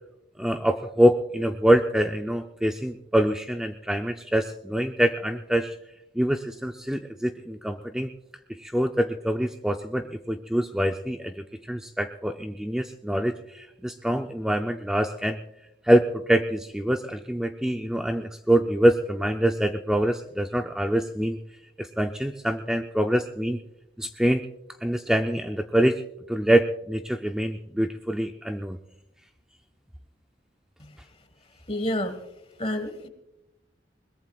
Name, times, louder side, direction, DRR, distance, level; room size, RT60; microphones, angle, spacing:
voice 1, 0.4-5.8 6.1-8.1 8.5-15.4 15.8-21.4 21.8-23.6 24.0-24.5 24.8-26.0 26.3-28.8, equal, 5° right, 4 dB, 0.4 m, -25 dB
voice 2, 31.7-32.2 32.6-33.1, left 1 dB, 30° left, 10 dB, 1.4 m, -29 dB
22.0 x 20.5 x 2.3 m, 0.91 s
head